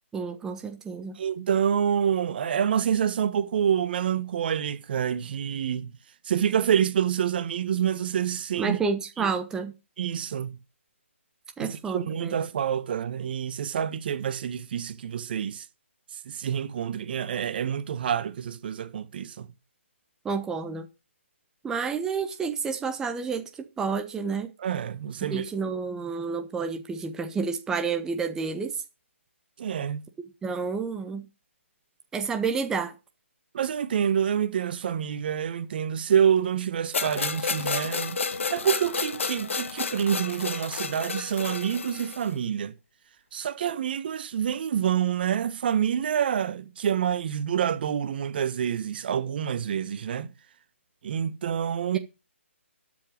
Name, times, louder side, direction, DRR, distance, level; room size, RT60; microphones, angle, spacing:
voice 1, 0.1-1.2 8.6-9.7 11.6-12.4 20.2-20.9 21.6-24.5 25.2-28.8 30.4-31.3 32.1-32.9 51.9-52.0, right 5 dB, 10° right, 1.1 m, -30 dB
voice 2, 1.2-5.9 6.2-8.8 9.2-9.3 10.0-10.6 11.6-15.6 16.2-19.5 24.6-25.5 29.6-30.0 33.5-38.2 38.5-42.7 43.3-50.3 51.0-52.0, right 8 dB, 45° right, 1.6 m, -27 dB
sound 1, 36.9-42.3, left 5 dB, 70° left, 1.5 m, -31 dB
13.0 x 7.6 x 5.4 m
hypercardioid pair, 150°, 7 cm